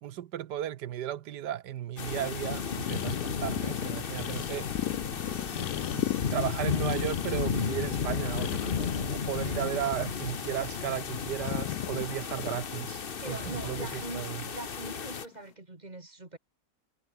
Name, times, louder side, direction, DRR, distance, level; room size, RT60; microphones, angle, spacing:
voice 1, 0.0-4.7 5.9-14.4, right 11 dB, 75° right, 1.4 m, -35 dB
sound 1, 2.0-15.3, left 6 dB, 40° left, 1.0 m, -34 dB
sound 2, 2.8-9.1 9.4-10.5 10.7-14.3 15.1-15.4, left 12 dB, 70° left, 1.2 m, -37 dB
sound 3, 4.3-9.7, left 6 dB, 90° left, 2.7 m, -48 dB
voice 2, 13.2-14.2 14.5-16.4, right 2 dB, 25° right, 2.7 m, -42 dB
omnidirectional pair, 1.9 m